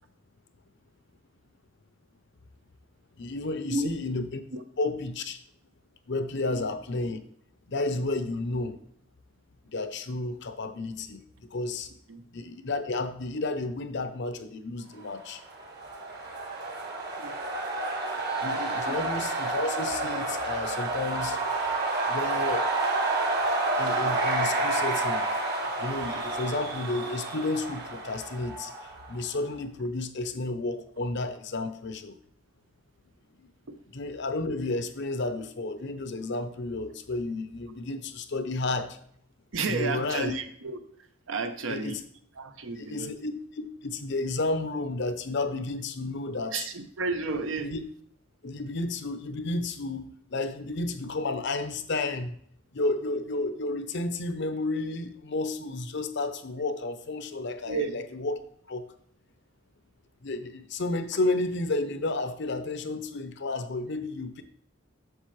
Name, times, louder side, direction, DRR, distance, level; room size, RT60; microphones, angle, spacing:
voice 1, 3.2-4.4 4.8-5.4 6.1-7.2 7.7-8.8 9.7-11.9 12.3-15.4 18.4-21.4 22.1-22.7 23.7-25.3 25.8-32.1 33.4-33.5 33.9-39.0 39.7-40.3 41.7-42.0 42.9-46.7 47.6-47.8 48.4-52.4 52.7-58.4 58.7-58.9 60.2-64.4, left 2 dB, 60° left, 10 dB, 0.7 m, -32 dB
sound 1, 15.4-29.2, right 2 dB, 55° right, 1.6 m, -29 dB
voice 2, 39.5-42.0 42.4-43.1 46.5-47.7 57.6-58.0, right 3 dB, 75° right, 7 dB, 0.8 m, -32 dB
8.1 x 6.6 x 3.2 m, 0.64 s
head